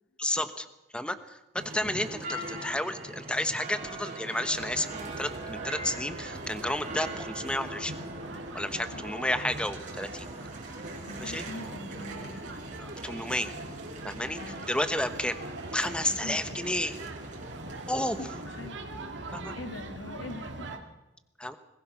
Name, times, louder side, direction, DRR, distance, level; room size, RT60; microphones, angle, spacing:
voice 1, 0.2-0.7 0.9-7.9 8.5-10.3 11.2-11.4 12.8-13.5 14.0-14.4 14.7-15.4 15.7-16.9 17.9-18.2 19.3-19.6 21.4-21.6, left 1 dB, 5° left, 10 dB, 1.1 m, -31 dB
sound 1, 1.6-18.7, right 1 dB, 45° right, 5.2 m, -42 dB
sound 2, 4.5-20.8, right 2 dB, 70° right, 2.2 m, -42 dB
voice 2, 11.0-12.7 13.3-13.4 14.3-14.7 16.1-16.6 18.2-18.8 19.1-20.7, left 2 dB, 80° left, 7 dB, 1.8 m, -43 dB
21.5 x 20.5 x 6.0 m, 0.99 s
head